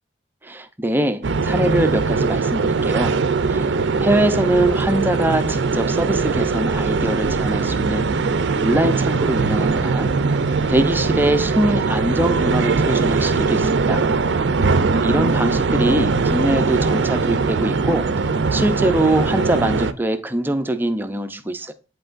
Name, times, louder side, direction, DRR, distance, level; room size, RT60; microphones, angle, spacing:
voice 1, 0.4-3.2 3.5-3.7 4.0-8.2 8.6-10.1 10.7-14.1 15.0-18.2 18.5-21.7, right 1 dB, 10° right, 0.5 m, -22 dB
sound 1, 1.2-19.9, right 4 dB, 65° right, 0.5 m, -20 dB
10.0 x 4.5 x 2.5 m
head